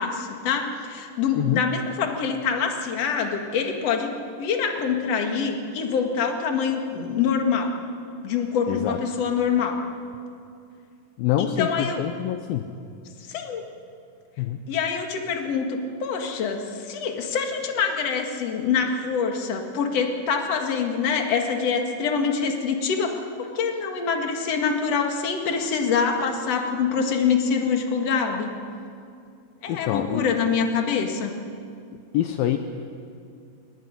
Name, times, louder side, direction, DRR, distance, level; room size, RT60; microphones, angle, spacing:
voice 1, 0.0-4.1 4.4-7.7 8.2-9.8 11.4-12.0 13.3-13.7 14.7-28.5 29.6-31.3, left 6 dB, 45° left, 3 dB, 2.3 m, -25 dB
voice 2, 8.7-9.0 11.2-12.7 14.4-14.7 29.7-30.3 32.1-32.6, left 11 dB, 80° left, 7 dB, 2.2 m, -25 dB
22.0 x 19.0 x 9.9 m, 2.4 s
omnidirectional pair, 5.0 m